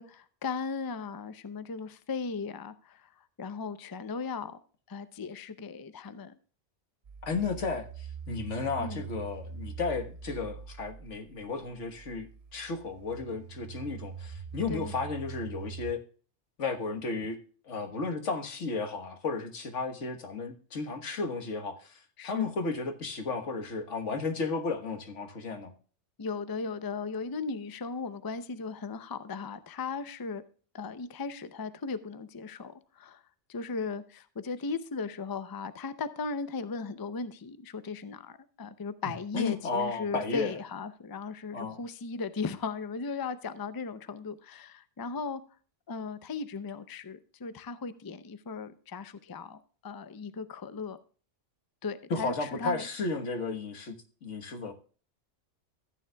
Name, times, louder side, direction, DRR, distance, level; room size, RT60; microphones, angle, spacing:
voice 1, 0.0-3.1 3.4-4.6 4.9-6.3 8.8-9.0 14.7-14.9 22.2-22.5 26.2-30.4 30.7-33.2 33.5-45.4 45.9-51.0 51.8-52.8, left 4 dB, 30° left, 0.4 m, -37 dB
sound 1, 7.1-16.0, right 6 dB, 45° right, 0.5 m, -43 dB
voice 2, 7.3-16.0 16.6-17.4 17.7-25.7 39.3-40.5 41.5-41.8 52.1-53.9 54.2-54.7, left 4 dB, 85° left, 1.7 m, -33 dB
14.5 x 9.3 x 2.3 m
omnidirectional pair, 1.2 m